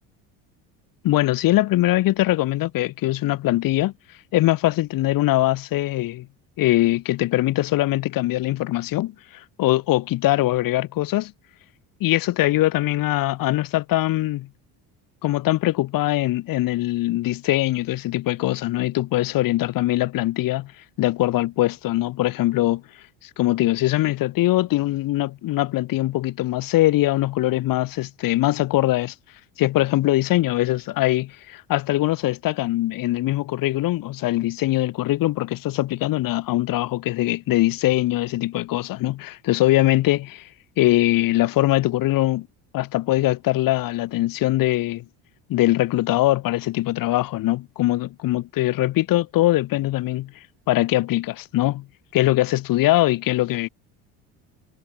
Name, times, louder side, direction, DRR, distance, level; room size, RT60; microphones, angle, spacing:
voice 1, 1.0-3.9 4.3-6.3 6.6-11.3 12.0-14.5 15.2-20.7 21.0-22.8 23.2-29.1 29.6-40.5 40.8-42.5 42.7-45.0 45.5-50.3 50.7-51.9 52.1-53.7, left 16 dB, 60° left, 4.3 m, -22 dB
supercardioid pair, 105°, 37 cm